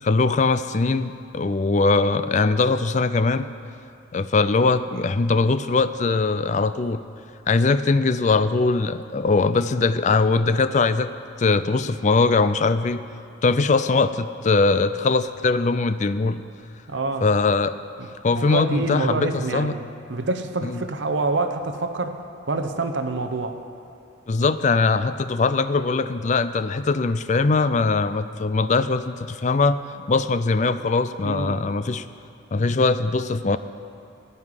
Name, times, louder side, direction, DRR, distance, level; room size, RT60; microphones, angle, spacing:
voice 1, 0.0-3.5 4.1-7.0 7.5-11.1 11.4-13.0 13.4-16.4 17.2-17.8 18.2-19.8 20.6-20.8 24.3-29.8 30.1-32.0 32.5-33.6, left 3 dB, 40° left, 12 dB, 0.4 m, -21 dB
voice 2, 16.9-17.3 18.0-22.2 22.5-23.6 31.2-31.6, right 3 dB, 70° right, 7 dB, 0.8 m, -27 dB
16.0 x 5.5 x 9.7 m, 2.5 s
head